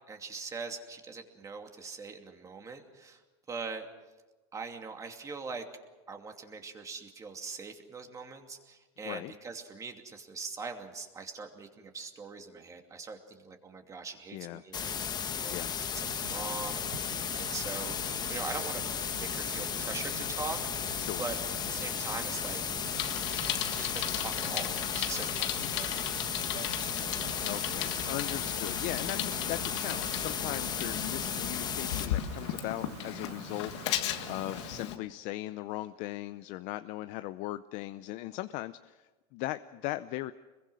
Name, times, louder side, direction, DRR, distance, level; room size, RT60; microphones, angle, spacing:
voice 1, 0.1-3.2 3.5-3.9 4.5-5.6 6.1-15.6 15.9-18.9 19.2-22.9 23.5-25.7, right 4 dB, 20° right, 4 dB, 2.7 m, -42 dB
voice 2, 14.3-14.6 15.5-15.7 21.0-21.2 27.4-40.3, left 16 dB, 55° left, 12 dB, 0.7 m, -39 dB
sound 1, 14.7-32.1, left 7 dB, 30° left, 1.2 m, -35 dB
sound 2, 16.0-34.8, right 7 dB, 70° right, 4.4 m, -46 dB
Bicycle, 22.9-35.0, left 12 dB, 80° left, 1.7 m, -37 dB
25.5 x 22.5 x 6.3 m, 1.2 s
supercardioid pair, 125°, 14 cm